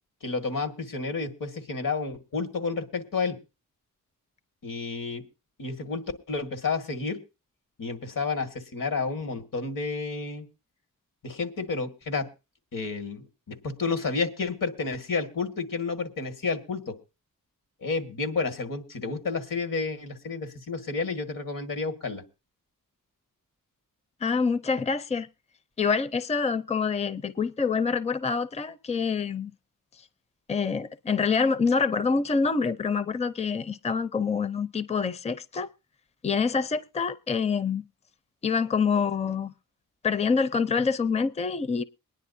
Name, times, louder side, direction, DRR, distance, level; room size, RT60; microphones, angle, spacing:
voice 1, 0.2-3.4 4.6-5.2 5.6-7.2 7.8-10.5 11.2-12.3 12.7-16.9 17.8-22.2, left 4 dB, 75° left, 1.9 m, -31 dB
voice 2, 24.2-25.3 25.8-29.5 30.5-35.7 36.2-37.8 38.4-39.5 40.0-41.8, left 5 dB, 20° left, 0.5 m, -26 dB
23.0 x 10.0 x 2.7 m
wide cardioid pair, 95°, 33 cm